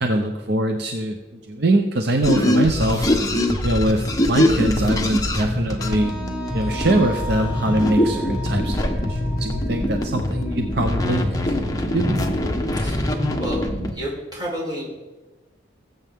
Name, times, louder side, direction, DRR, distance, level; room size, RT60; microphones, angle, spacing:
voice 1, 0.0-1.2 1.5-3.2 3.6-6.1 6.5-12.1, right 1 dB, 60° right, 4 dB, 0.8 m, -23 dB
sound 1, 2.2-13.9, left 1 dB, 20° left, 1.1 m, -23 dB
Wind instrument woodwind instrument, 5.8-11.5, left 2 dB, 5° right, 1.5 m, -36 dB
voice 2, 13.9-14.9, equal, 20° right, -4 dB, 4.1 m, -30 dB
19.5 x 8.0 x 3.7 m, 1.2 s
head